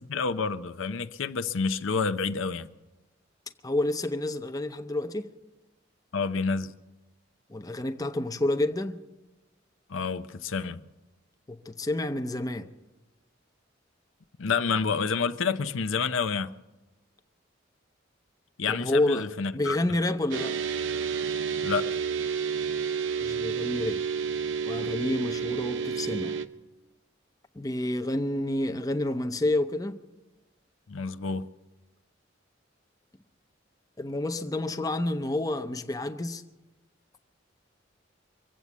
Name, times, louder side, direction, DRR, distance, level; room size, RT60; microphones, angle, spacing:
voice 1, 0.1-2.7 6.1-6.7 9.9-10.8 14.4-16.5 18.6-19.8 21.6-21.9 30.9-31.5, left 5 dB, 85° left, 0.6 m, -29 dB
voice 2, 3.6-5.3 7.5-9.0 11.5-12.7 18.7-20.6 23.2-24.0 24.7-26.4 27.5-30.0 34.0-36.4, left 1 dB, 20° left, 0.6 m, -29 dB
sound 1, 20.3-26.5, right 6 dB, 70° right, 0.7 m, -30 dB
24.0 x 8.2 x 7.3 m
head